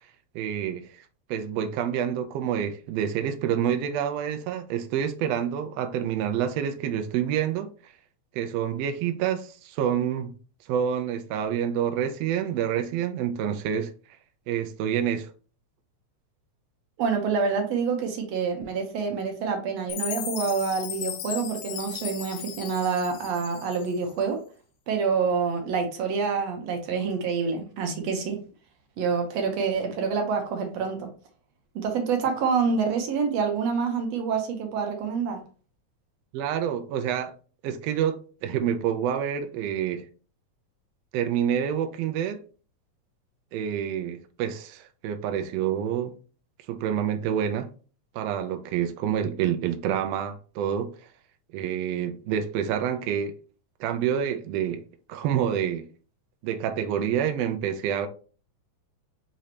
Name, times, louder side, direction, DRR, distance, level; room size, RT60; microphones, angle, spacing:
voice 1, 0.3-1.0 1.3-7.7 8.3-10.3 10.7-13.9 14.5-15.3 36.3-37.3 37.6-40.0 41.1-42.4 43.5-46.1 46.7-47.7 48.1-50.9 51.5-53.4 53.8-54.8 55.1-55.9 56.4-58.1, right 9 dB, 85° right, 1.4 m, -27 dB
voice 2, 17.0-24.4 24.9-28.4 29.0-31.1 31.8-35.4, right 5 dB, 70° right, 1.8 m, -27 dB
Chime, 19.9-24.1, left 10 dB, 85° left, 2.1 m, -36 dB
5.0 x 3.2 x 2.8 m
omnidirectional pair, 3.5 m